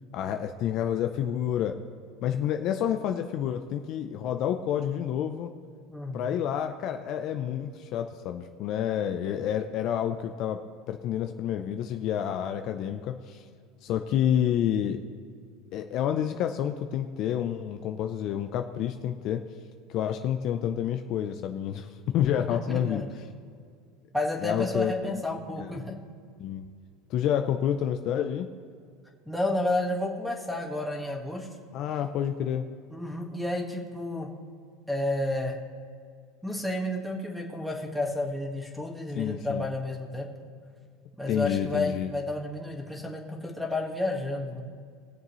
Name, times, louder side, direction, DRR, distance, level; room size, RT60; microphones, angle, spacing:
voice 1, 0.1-1.8 2.2-5.5 6.1-13.4 13.8-15.0 15.7-19.4 19.9-23.0 24.4-25.2 25.6-25.7 26.4-26.6 27.1-28.5 31.7-32.6 39.2-39.6 41.3-42.1, left 10 dB, 45° left, 6 dB, 0.6 m, -29 dB
voice 2, 5.9-6.3 22.5-23.1 24.1-26.0 29.2-31.5 32.9-34.3 34.9-35.6 36.4-40.3 41.1-44.6, left 2 dB, ahead, 0 dB, 1.7 m, -31 dB
21.0 x 7.4 x 3.1 m, 2.2 s
supercardioid pair, 140°, 0 cm